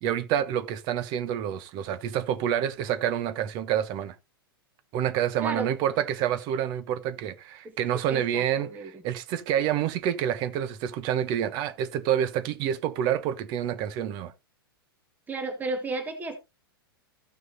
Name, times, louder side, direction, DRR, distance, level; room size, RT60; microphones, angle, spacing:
voice 1, 0.0-4.2 4.9-14.3, right 10 dB, 35° right, 1.0 m, -28 dB
voice 2, 8.1-8.9 15.3-16.4, right 3 dB, 15° right, 1.6 m, -33 dB
15.0 x 6.2 x 2.7 m
figure-of-eight pair, 100°, 12 cm